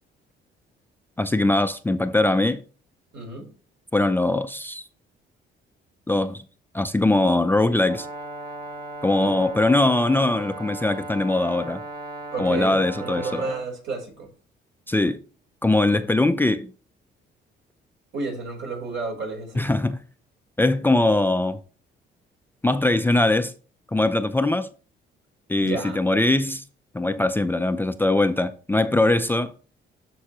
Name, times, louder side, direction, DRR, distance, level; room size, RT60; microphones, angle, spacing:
voice 1, 1.2-2.6 3.9-4.8 6.1-6.4 6.7-8.1 9.0-11.8 12.4-13.4 14.9-15.2 15.6-16.7 19.6-20.0 20.6-21.6 22.6-23.5 23.9-24.7 25.5-26.6 26.9-29.5, left 2 dB, 10° left, 0.5 m, -21 dB
voice 2, 3.1-3.5 9.2-9.3 12.3-14.3 18.1-19.7 25.6-26.0, right 3 dB, 70° right, 4.1 m, -31 dB
Brass instrument, 7.8-13.7, right 2 dB, 50° right, 1.6 m, -37 dB
13.0 x 4.7 x 3.0 m
cardioid pair, 90°, 20 cm